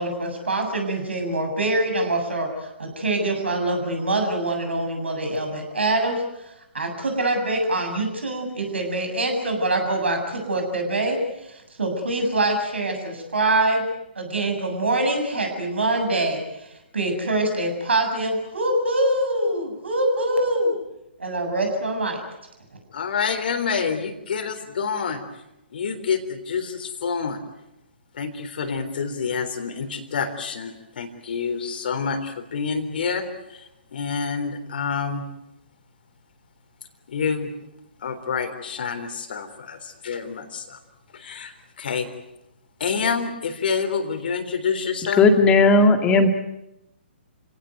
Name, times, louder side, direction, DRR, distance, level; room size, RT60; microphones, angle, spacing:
voice 1, 0.0-6.2 6.7-13.9 14.2-16.7 16.9-20.7 21.2-22.2, right 2 dB, 75° right, 4 dB, 7.6 m, -24 dB
voice 2, 22.9-25.2 25.7-27.4 28.1-35.2 37.1-37.5 38.0-40.8 41.1-42.1 42.8-45.2, left 6 dB, 55° left, 8 dB, 3.7 m, -28 dB
voice 3, 45.2-46.3, left 3 dB, 15° left, 6 dB, 2.1 m, -15 dB
28.0 x 17.5 x 9.4 m, 0.90 s
figure-of-eight pair, 130°, 6 cm